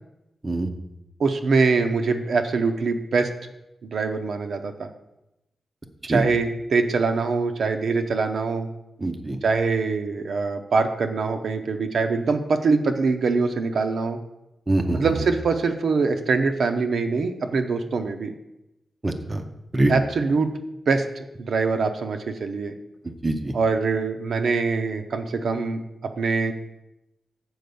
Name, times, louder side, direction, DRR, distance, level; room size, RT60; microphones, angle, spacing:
voice 1, 1.2-3.3 3.9-4.9 6.1-8.7 9.4-14.2 14.9-18.3 19.9-20.5 20.9-22.7 23.5-25.8 26.2-26.5, right 4 dB, 60° right, 6 dB, 0.7 m, -23 dB
voice 2, 9.0-9.4 14.7-15.1 19.0-19.4 19.7-19.9 23.2-23.5, right 2 dB, 20° right, 5 dB, 0.6 m, -23 dB
7.9 x 4.6 x 6.9 m, 0.91 s
wide cardioid pair, 170°, 0 cm